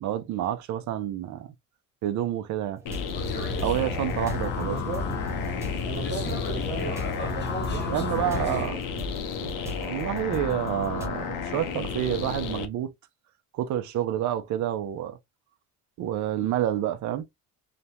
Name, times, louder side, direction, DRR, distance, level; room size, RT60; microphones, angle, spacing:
voice 1, 0.0-1.5 2.0-2.8 3.6-4.8 7.9-8.8 9.4-12.9 13.5-15.2 16.0-17.3, right 11 dB, 55° right, 0.5 m, -29 dB
sound 1, 2.8-11.1, left 2 dB, 10° right, 0.5 m, -40 dB
sound 2, 2.9-12.7, left 6 dB, 70° left, 0.7 m, -33 dB
sound 3, 3.1-8.7, left 3 dB, 30° left, 0.7 m, -33 dB
voice 2, 4.6-5.3 5.8-8.8, right 4 dB, 35° right, 1.1 m, -37 dB
2.4 x 2.1 x 2.7 m
cardioid pair, 140°, 34 cm